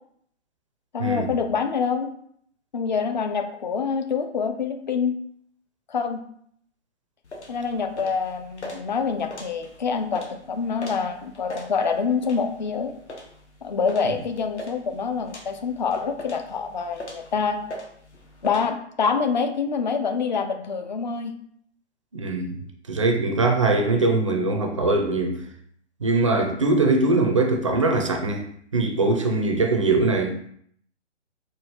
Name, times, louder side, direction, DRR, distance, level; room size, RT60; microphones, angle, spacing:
voice 1, 0.9-2.1 2.7-5.2 5.9-6.2 7.5-12.9 13.6-17.6 18.4-21.4 23.9-24.1, left 5 dB, 40° left, 7 dB, 0.4 m, -26 dB
sound 1, 7.2-18.7, left 1 dB, 70° left, 1.0 m, -42 dB
voice 2, 22.1-22.6 22.9-25.4 26.0-28.5 28.7-30.4, right 3 dB, 30° right, 3 dB, 0.4 m, -22 dB
4.6 x 2.4 x 3.2 m, 0.64 s
figure-of-eight pair, 130°, 35 cm